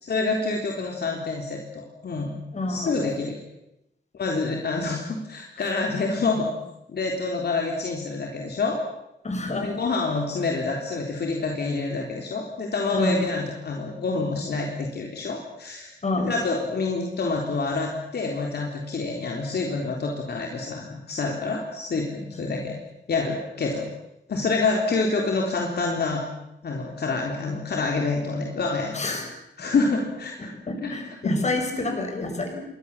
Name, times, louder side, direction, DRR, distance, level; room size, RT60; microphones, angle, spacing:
voice 1, 0.0-2.3 2.7-3.4 4.1-6.5 6.9-8.8 9.5-22.8 23.1-23.9 24.3-26.2 26.6-29.0 29.6-30.5 30.8-30.9 31.2-31.4, left 3 dB, 55° left, 1 dB, 3.8 m, -27 dB
voice 2, 2.5-2.9 9.2-9.7 12.9-13.2 16.0-16.3 28.9-29.3 30.4-32.6, left 2 dB, 35° left, 4 dB, 6.9 m, -27 dB
28.5 x 24.0 x 7.4 m, 0.85 s
wide cardioid pair, 160°, 19 cm